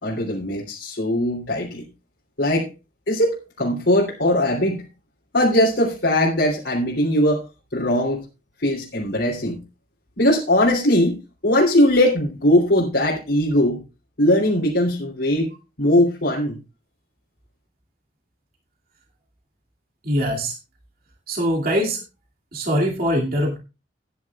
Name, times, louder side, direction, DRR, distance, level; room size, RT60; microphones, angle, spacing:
voice 1, 0.0-1.8 2.4-2.7 3.1-4.8 5.3-7.4 7.7-8.2 8.6-9.6 10.2-11.2 11.4-13.8 14.2-15.5 15.8-16.6, left 1 dB, 75° left, -5 dB, 3.1 m, -20 dB
voice 2, 20.0-20.5 21.3-22.0 22.5-23.6, equal, 55° right, 0 dB, 2.4 m, -22 dB
16.5 x 10.0 x 2.4 m, 0.28 s
head